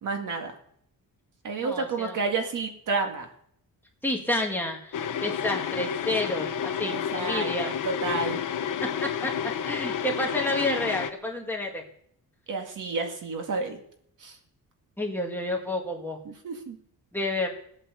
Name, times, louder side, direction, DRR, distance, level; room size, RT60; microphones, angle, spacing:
voice 1, 0.0-0.6 1.4-3.3 6.8-8.4 9.8-9.9 12.5-13.8 14.2-14.4 16.3-16.8, right 4 dB, 60° right, 3 dB, 2.3 m, -31 dB
voice 2, 1.6-2.2 4.0-7.7 8.8-11.8 15.0-16.2 17.1-17.5, left 1 dB, 5° left, 0 dB, 1.9 m, -30 dB
sound 1, 4.9-11.1, left 8 dB, 60° left, 1.1 m, -30 dB
17.5 x 9.0 x 7.0 m, 0.67 s
wide cardioid pair, 175°, 36 cm